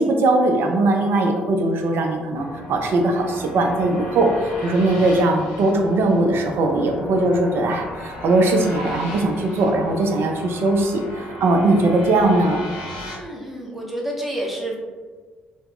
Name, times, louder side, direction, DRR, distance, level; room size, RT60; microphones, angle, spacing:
voice 1, 0.0-12.6, right 2 dB, 50° right, 3 dB, 0.4 m, -20 dB
sound 1, 2.3-13.2, left 1 dB, 80° left, 0.7 m, -36 dB
voice 2, 13.1-14.8, right 1 dB, 5° right, -3 dB, 0.8 m, -29 dB
3.3 x 2.0 x 2.3 m, 1.5 s
figure-of-eight pair, 45°, 5 cm